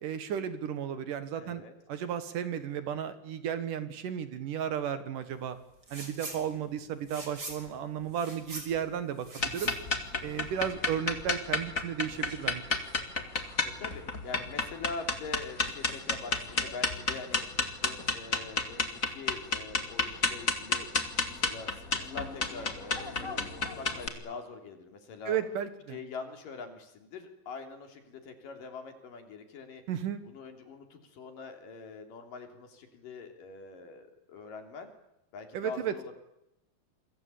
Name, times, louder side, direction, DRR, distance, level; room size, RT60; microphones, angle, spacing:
voice 1, 0.0-1.6 1.9-5.6 5.9-9.7 10.2-12.6 25.3-26.0 29.9-30.2 35.5-35.9, right 9 dB, 65° right, 11 dB, 3.0 m, -34 dB
voice 2, 1.4-1.7 6.5-6.9 13.8-17.5 17.8-20.9 21.3-25.4 25.9-29.8 30.2-34.9 35.3-36.1, left 4 dB, 65° left, 5 dB, 4.8 m, -44 dB
sound 1, 5.8-6.4 6.7-10.7, right 2 dB, 25° right, 5.3 m, -43 dB
sound 2, 9.4-24.1, left 3 dB, 25° left, 2.1 m, -31 dB
28.0 x 23.5 x 8.6 m, 0.84 s
omnidirectional pair, 4.2 m